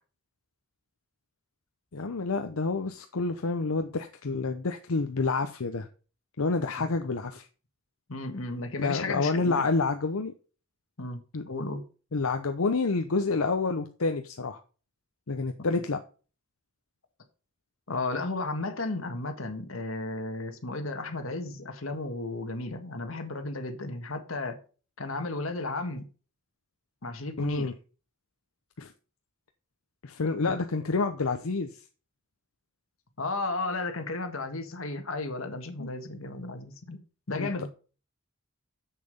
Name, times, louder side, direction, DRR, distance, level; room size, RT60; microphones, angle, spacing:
voice 1, 1.9-5.9 6.4-7.5 8.8-10.3 11.3-11.4 12.1-14.6 15.3-16.0 27.4-27.7 28.8-28.9 30.0-31.8 35.8-35.9 37.4-37.7, left 3 dB, 90° left, 0.8 m, -28 dB
voice 2, 8.1-9.7 11.0-11.8 17.9-24.6 25.0-26.0 27.0-27.7 33.2-37.0 37.3-37.7, left 2 dB, 70° left, 1.6 m, -34 dB
7.6 x 6.7 x 5.2 m
head